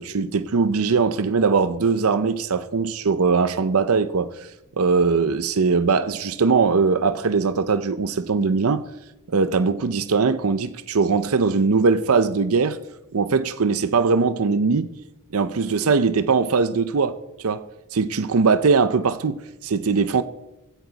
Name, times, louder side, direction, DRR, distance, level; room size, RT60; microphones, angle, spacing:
voice 1, 0.0-4.3 4.8-8.8 9.3-12.8 13.1-14.9 15.3-17.2 17.4-17.6 17.9-20.2, right 4 dB, 75° right, 0.6 m, -20 dB
16.0 x 13.5 x 4.1 m
head